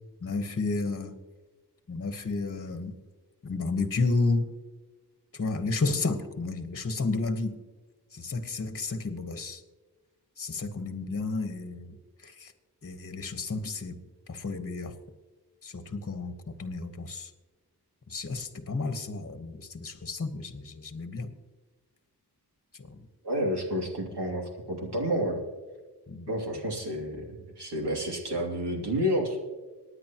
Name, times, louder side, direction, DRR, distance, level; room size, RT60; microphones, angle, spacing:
voice 1, 0.2-1.2 1.9-3.0 3.4-4.5 5.3-7.6 8.1-9.6 10.4-12.0 12.2-12.5 12.8-14.0 14.3-14.9 15.6-17.3 18.1-21.3 22.8-23.0 26.1-26.3, left 3 dB, 35° left, 9 dB, 1.2 m, -32 dB
voice 2, 23.2-25.4 26.3-27.3 27.6-29.4, equal, 80° right, 0 dB, 2.7 m, -30 dB
25.0 x 9.7 x 3.0 m, 1.3 s
wide cardioid pair, 65°, 40 cm